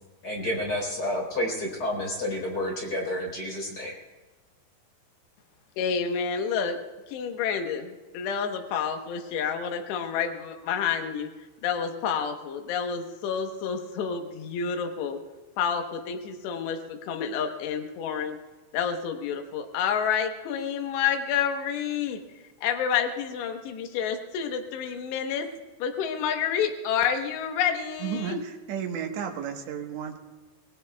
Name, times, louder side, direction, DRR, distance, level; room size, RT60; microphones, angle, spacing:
voice 1, 0.2-3.9, left 1 dB, 25° left, -1 dB, 4.1 m, -30 dB
voice 2, 5.8-6.8 7.1-11.3 11.6-15.2 15.6-18.4 18.7-22.2 22.6-25.5 25.8-28.4, left 7 dB, 75° left, 5 dB, 3.2 m, -29 dB
voice 3, 28.0-30.2, right 8 dB, 80° right, 3 dB, 3.5 m, -33 dB
26.5 x 19.5 x 2.3 m, 1.2 s
omnidirectional pair, 5.1 m